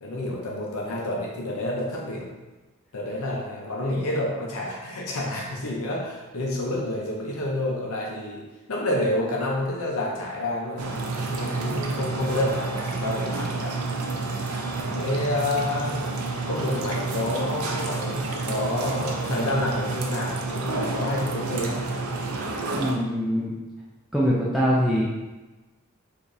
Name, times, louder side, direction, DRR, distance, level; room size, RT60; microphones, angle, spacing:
voice 1, 0.0-2.3 2.9-8.4 8.7-11.0 11.3-13.8 14.9-16.0 16.5-21.8, left 1 dB, 65° left, -3 dB, 0.6 m, -29 dB
sound 1, 10.8-22.9, right 3 dB, 75° right, 0.5 m, -29 dB
voice 2, 22.7-23.5 24.1-25.0, equal, ahead, -8 dB, 0.5 m, -23 dB
4.9 x 2.6 x 2.6 m, 1.2 s
head